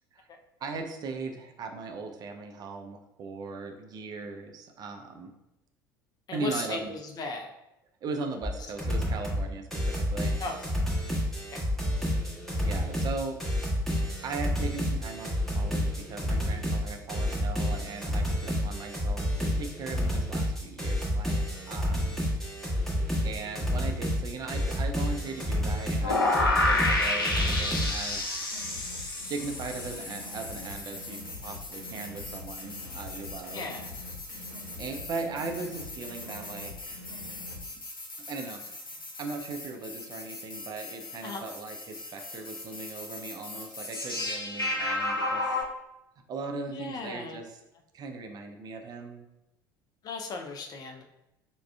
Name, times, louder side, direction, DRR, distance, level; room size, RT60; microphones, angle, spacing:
voice 1, 0.6-5.3 6.3-6.9 8.0-10.4 12.5-13.4 13.9-22.2 23.0-28.5 29.3-33.7 34.7-37.0 38.3-45.6 46.3-47.6 47.9-49.3, right 4 dB, 35° right, 4 dB, 0.4 m, -39 dB
voice 2, 6.3-7.5 10.4-10.6 11.5-11.6 33.5-33.9 41.2-41.4 46.7-47.4 50.0-51.0, left 3 dB, 35° left, 4 dB, 0.5 m, -36 dB
sound 1, 8.4-8.5 8.8-9.4 9.7-27.9, equal, 5° left, 1.1 m, -29 dB
sound 2, 26.0-45.6, left 2 dB, 85° left, 0.5 m, -33 dB
sound 3, 28.1-37.6, left 2 dB, 85° right, 0.7 m, -45 dB
4.7 x 2.2 x 2.2 m, 0.89 s
figure-of-eight pair, 65°, 12 cm